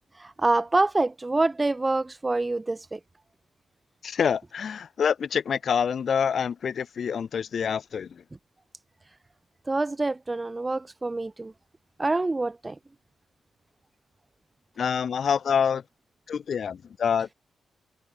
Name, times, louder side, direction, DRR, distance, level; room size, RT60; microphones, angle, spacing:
voice 1, 0.1-3.0 9.7-11.5 12.0-12.8, right 2 dB, 20° right, 2.5 m, -26 dB
voice 2, 4.0-8.2 14.8-15.8 16.3-17.3, left 7 dB, 60° left, 1.4 m, -26 dB
cardioid pair, 80°, 0 cm